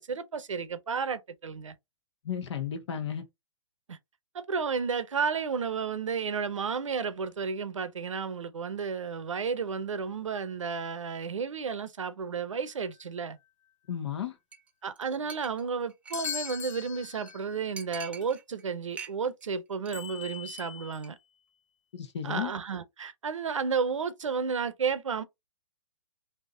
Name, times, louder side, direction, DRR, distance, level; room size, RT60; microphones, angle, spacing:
voice 1, 0.0-1.7 3.9-4.0 4.3-13.4 14.8-21.2 22.2-25.2, right 5 dB, 85° right, 0.7 m, -32 dB
voice 2, 2.2-3.2 13.9-14.3 21.9-22.5, left 8 dB, 65° left, 1.1 m, -33 dB
sound 1, 12.5-12.6 16.1-17.6 18.2-18.3 19.9-21.0, left 8 dB, 85° left, 0.5 m, -40 dB
Chink clink, 14.5-14.7 14.9-15.0 15.3-16.6 16.9-17.0 17.3-17.4 17.8-18.6 18.9-19.5 19.7-20.0 20.3-20.6 20.9-21.1, right 6 dB, 10° right, 0.4 m, -45 dB
3.5 x 2.7 x 2.6 m
hypercardioid pair, 130°, 16 cm